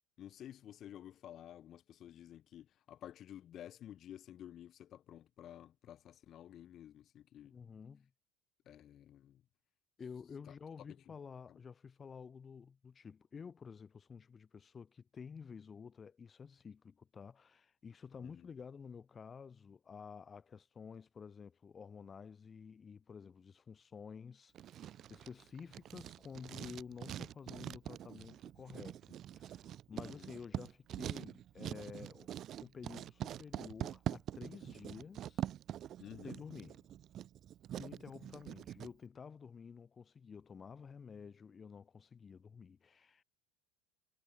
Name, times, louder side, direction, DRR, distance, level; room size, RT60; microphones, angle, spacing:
voice 1, 0.2-7.6 8.6-9.4 10.5-10.6 10.9-11.2 11.5-11.6 18.2-18.5 29.9-30.4 36.0-36.4, left 11 dB, 45° left, 6.3 m, -53 dB
voice 2, 7.5-8.1 10.0-32.3 32.6-35.5 36.2-36.8 37.8-43.2, left 6 dB, 30° left, 1.8 m, -51 dB
Writing, 24.5-38.9, right 11 dB, 45° right, 1.5 m, -44 dB
figure-of-eight pair, 70°, 0 cm